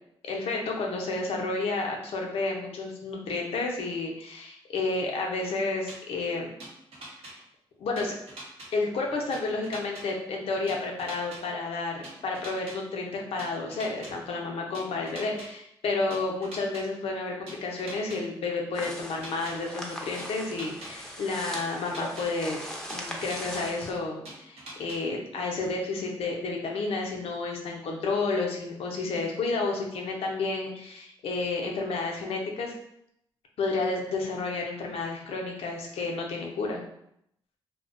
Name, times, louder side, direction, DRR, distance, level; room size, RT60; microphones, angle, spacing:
voice 1, 0.2-6.5 7.8-8.1 8.7-22.6 22.9-32.7 33.6-36.8, left 3 dB, 65° left, 0 dB, 0.5 m, -31 dB
sound 1, 5.9-6.0 6.6-7.3 8.0-8.7 9.3-10.0 10.7-11.4 12.0-12.8 13.4-14.1 14.7-15.5 16.1-16.8 17.5-18.2 18.8-19.5 20.2-20.9 21.5-22.3 22.9-23.6 24.3-25.0, right 1 dB, 70° right, 0.7 m, -43 dB
sound 2, 18.7-23.9, equal, 5° left, 0.5 m, -39 dB
2.4 x 2.1 x 2.4 m, 0.75 s
supercardioid pair, 50°, 11 cm